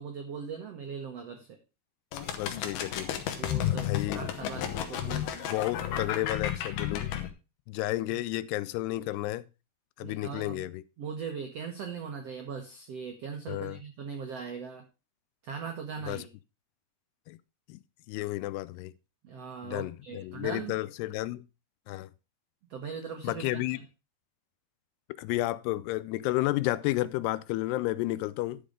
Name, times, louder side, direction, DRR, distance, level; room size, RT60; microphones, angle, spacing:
voice 1, 0.0-1.6 3.4-5.2 10.0-10.7 11.0-14.8 15.4-16.3 19.2-20.8 22.7-23.8, right 6 dB, 85° right, 1.3 m, -40 dB
sound 1, 2.1-7.3, left 10 dB, 75° left, 3.0 m, -32 dB
voice 2, 2.4-3.2 3.7-4.2 5.5-7.1 7.7-9.4 10.0-10.8 13.5-13.8 16.1-16.2 17.3-17.4 17.7-17.8 18.1-18.9 19.6-21.4 21.9-22.1 23.2-23.8 25.2-28.6, left 17 dB, 90° left, 2.7 m, -32 dB
11.5 x 5.3 x 5.0 m
omnidirectional pair, 4.6 m